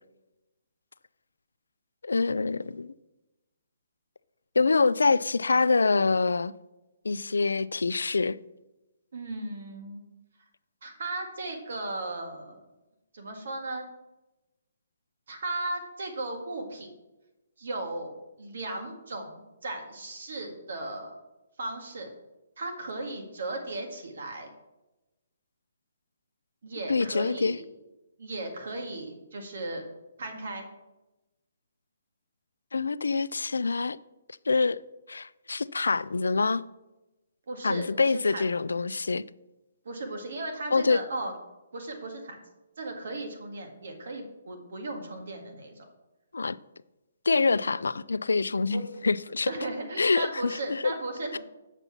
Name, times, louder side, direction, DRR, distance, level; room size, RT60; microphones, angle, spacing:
voice 1, 2.0-2.9 4.6-6.5 7.0-8.4 26.9-27.6 32.7-34.0 34.5-34.8 35.1-36.6 37.6-39.2 40.7-41.0 46.3-46.6 47.3-49.5 50.0-50.9 51.3-51.4, left 4 dB, 90° left, 0.3 m, -25 dB
voice 2, 9.1-10.0 10.8-12.6 13.1-13.8 15.3-16.9 17.6-21.2 21.6-22.1 22.6-24.5 26.6-27.7 28.2-29.8 30.2-30.7 37.5-38.5 39.9-41.3 41.7-42.4 42.8-45.9 48.7-49.1 49.5-51.4, right 2 dB, 70° right, 1.9 m, -36 dB
8.1 x 5.5 x 5.9 m
hypercardioid pair, 150°, 0 cm